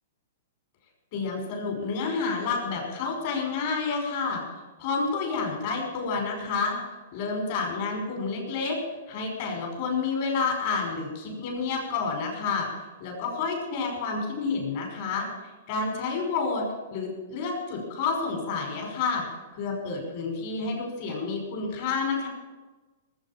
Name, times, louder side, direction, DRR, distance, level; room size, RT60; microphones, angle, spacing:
voice 1, 1.1-4.4 4.8-6.8 7.1-8.8 9.1-12.7 13.0-15.3 15.7-16.7 16.9-19.3 19.6-22.3, left 4 dB, 55° left, 1 dB, 5.4 m, -29 dB
19.0 x 8.4 x 7.4 m, 1.2 s
hypercardioid pair, 125°, 0 cm